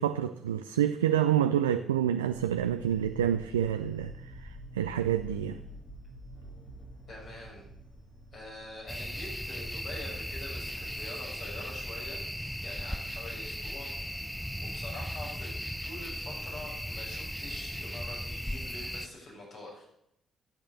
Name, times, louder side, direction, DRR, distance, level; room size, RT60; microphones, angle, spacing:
voice 1, 0.0-5.6, right 10 dB, 85° right, 0.4 m, -28 dB
sound 1, 2.3-10.9, equal, 75° left, 6.4 m, -48 dB
voice 2, 7.1-7.7 8.3-12.2 12.6-19.8, left 1 dB, 55° left, 6.0 m, -45 dB
sound 2, 8.9-19.1, equal, ahead, 0.7 m, -37 dB
12.0 x 8.6 x 6.6 m
figure-of-eight pair, 40°, 0 cm